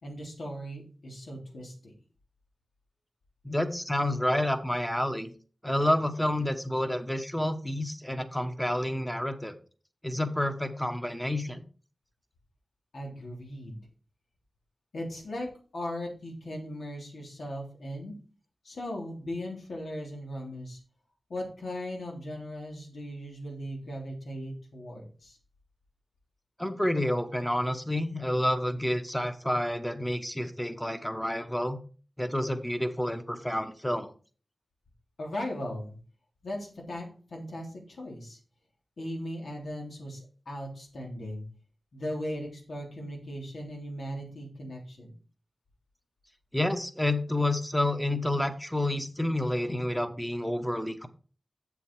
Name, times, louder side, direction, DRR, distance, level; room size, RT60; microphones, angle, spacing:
voice 1, 0.0-1.9 12.9-13.8 14.9-15.5 15.7-18.2 18.6-20.8 21.3-25.4 35.2-36.0 36.4-38.4 39.0-41.4 41.9-45.1, equal, 85° left, -1 dB, 3.2 m, -38 dB
voice 2, 3.4-5.3 5.6-9.5 10.0-11.6 26.6-31.8 32.2-34.1 46.5-51.1, left 1 dB, 5° left, 9 dB, 1.0 m, -29 dB
7.7 x 7.1 x 4.6 m, 0.39 s
wide cardioid pair, 95°, 0 cm